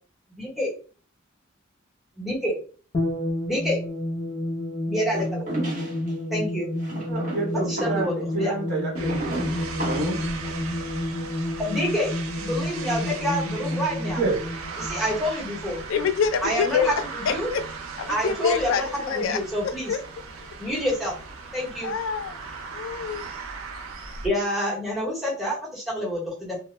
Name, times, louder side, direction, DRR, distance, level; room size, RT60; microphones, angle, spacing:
voice 1, 0.4-0.7 2.2-2.6 3.4-3.8 4.9-5.4 6.3-6.7 7.6-8.5 11.6-14.2 14.8-15.8 16.4-17.5 18.1-20.0 20.6-21.1 21.5-21.9 24.2-26.6, equal, ahead, -5 dB, 0.8 m, -28 dB
sound 1, 2.9-15.8, left 1 dB, 30° left, 0.6 m, -30 dB
sound 2, 5.1-6.1 6.8-10.3, right 2 dB, 40° right, 0.9 m, -34 dB
voice 2, 7.1-9.5 9.8-10.2 14.2-14.4, right 2 dB, 55° right, -2 dB, 1.2 m, -28 dB
sound 3, 9.0-24.3, right 4 dB, 85° right, 0.4 m, -38 dB
voice 3, 15.9-17.6 18.0-19.4 19.9-20.0 21.8-22.4 22.7-23.3, left 6 dB, 75° left, 11 dB, 0.3 m, -26 dB
2.1 x 2.0 x 3.0 m, 0.39 s
head